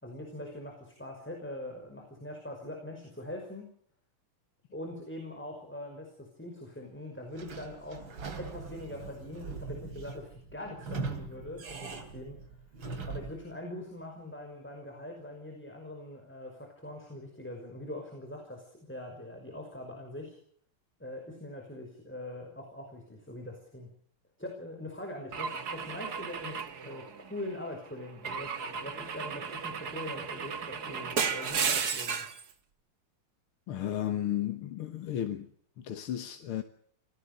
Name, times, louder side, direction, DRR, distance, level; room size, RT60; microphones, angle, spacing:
voice 1, 0.0-3.7 4.7-8.1 8.4-12.4 13.1-20.4 21.0-23.9 24.4-32.3, left 1 dB, 5° left, 5.2 m, -42 dB
Sliding door / Squeak, 7.3-13.4, right 4 dB, 65° right, 3.3 m, -41 dB
Car / Engine / Glass, 25.3-27.5 28.2-32.4, right 6 dB, 50° right, 2.0 m, -34 dB
voice 2, 33.7-35.5 35.8-36.6, left 11 dB, 80° left, 2.1 m, -33 dB
28.0 x 18.5 x 6.8 m
omnidirectional pair, 2.4 m